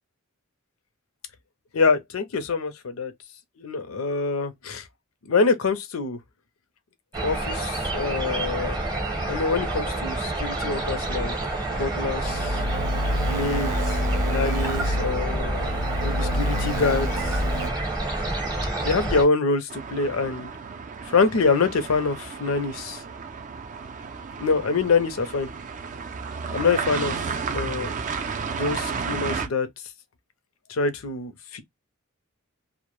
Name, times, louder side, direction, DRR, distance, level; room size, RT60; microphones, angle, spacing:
voice 1, 1.7-3.1 3.6-4.8 5.3-6.2 7.2-8.8 9.3-11.3 11.7-12.6 13.3-13.7 14.2-15.7 16.0-17.4 18.8-20.5 21.1-23.0 24.4-25.5 26.5-27.2 27.5-27.9 28.5-29.7 30.7-31.6, left 4 dB, 75° left, 0.5 m, -25 dB
sound 1, 7.1-19.3, right 2 dB, 20° right, 0.8 m, -28 dB
sound 2, 12.2-17.7, equal, 80° right, 0.7 m, -28 dB
sound 3, 19.7-29.5, right 5 dB, 35° right, 0.4 m, -33 dB
2.1 x 2.0 x 3.0 m
head